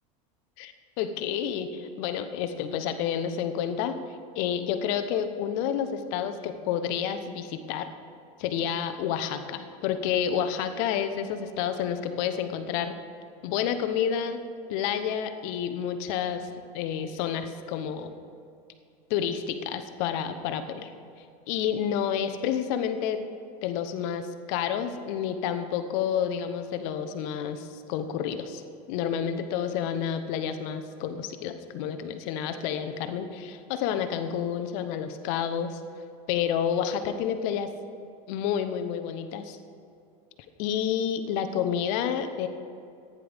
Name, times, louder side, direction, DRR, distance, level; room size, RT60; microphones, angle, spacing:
voice 1, 0.6-4.0 4.4-7.9 8.4-13.0 13.4-16.5 16.7-18.1 19.1-20.9 21.5-23.2 23.6-28.6 28.9-35.8 36.3-37.7 38.3-39.6 40.6-42.5, left 8 dB, 60° left, 9 dB, 0.9 m, -29 dB
15.0 x 9.9 x 3.5 m, 2.5 s
supercardioid pair, 125°, 19 cm